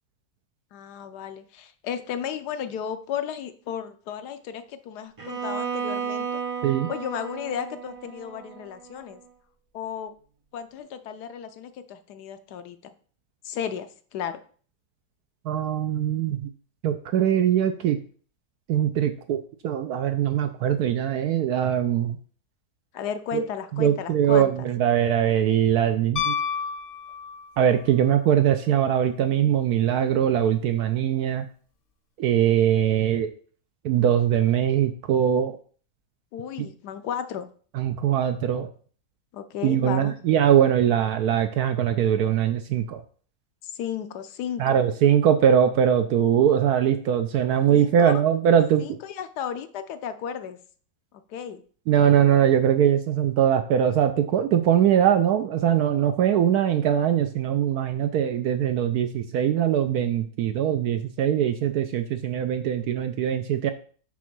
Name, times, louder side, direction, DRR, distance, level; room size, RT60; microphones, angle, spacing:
voice 1, 0.7-6.4 6.9-9.2 9.7-10.1 10.5-12.9 13.4-14.4 22.9-24.7 36.3-37.5 39.3-40.2 43.6-44.8 47.7-48.1 48.8-50.6 51.3-51.6, left 8 dB, 70° left, 10 dB, 1.1 m, -34 dB
Bowed string instrument, 5.2-9.2, right 6 dB, 55° right, 0.3 m, -33 dB
voice 2, 15.5-16.4 16.8-18.0 18.7-19.4 19.6-22.2 23.3-23.4 23.8-26.3 27.6-31.5 32.2-33.3 33.8-35.6 37.7-38.7 39.6-43.0 44.6-48.8 51.9-63.7, right 9 dB, 70° right, 8 dB, 0.9 m, -21 dB
Piano, 26.2-27.7 30.1-30.2, left 7 dB, 40° left, 0.9 m, -29 dB
6.2 x 3.6 x 5.9 m, 0.44 s
omnidirectional pair, 1.9 m